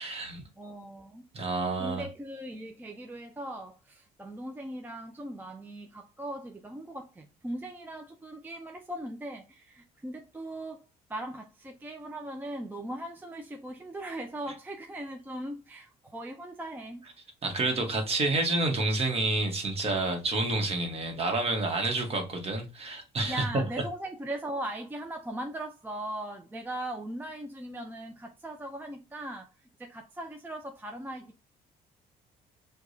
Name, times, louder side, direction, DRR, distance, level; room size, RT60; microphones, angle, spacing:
voice 1, 0.0-0.4 1.3-2.0 17.4-23.6, right 2 dB, 35° right, 1.1 m, -29 dB
voice 2, 0.6-1.2 1.8-17.0 23.3-29.5 29.8-31.4, right 1 dB, 10° right, 0.4 m, -39 dB
4.6 x 2.3 x 2.6 m
cardioid pair, 110°, 17 cm